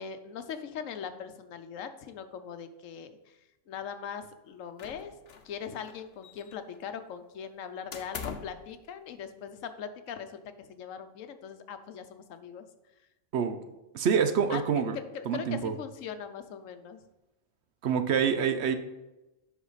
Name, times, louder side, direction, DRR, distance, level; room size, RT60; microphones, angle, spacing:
voice 1, 0.0-3.4 3.7-5.2 5.4-12.7 14.5-14.6 14.9-17.0, left 7 dB, 85° left, 9 dB, 1.1 m, -40 dB
sound 1, 4.8-5.6 5.8-6.8 7.9-8.6, left 6 dB, 60° left, 0.9 m, -42 dB
voice 2, 13.9-15.0 15.3-15.7 17.8-18.8, right 7 dB, 65° right, 8 dB, 0.9 m, -26 dB
8.2 x 5.8 x 4.0 m, 1.0 s
omnidirectional pair, 1.3 m